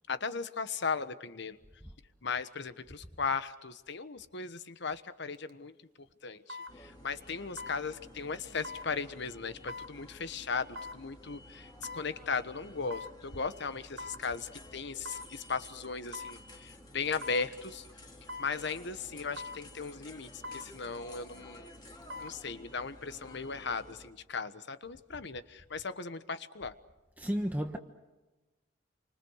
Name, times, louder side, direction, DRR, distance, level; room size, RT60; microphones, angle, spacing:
voice 1, 0.1-1.6 2.2-5.7 6.2-6.4 6.8-11.6 11.9-17.8 18.4-21.7 22.2-26.7, left 5 dB, 65° left, 1.3 m, -37 dB
sound 1, 5.3-5.5 6.5-6.7 7.6-7.8 8.6-8.9 9.7-9.9 10.8-11.0 11.8-12.1 12.9-13.2 14.0-14.2 15.0-15.3 16.1-16.4 17.2-17.5 18.3-18.5 19.4-19.6 20.4-20.7 21.9-22.4 22.8-22.9, left 2 dB, 60° right, 1.5 m, -42 dB
sound 2, 6.7-24.1, left 1 dB, 25° left, 3.1 m, -52 dB
voice 2, 27.2-27.8, equal, 10° right, 1.3 m, -32 dB
28.5 x 25.0 x 6.5 m
head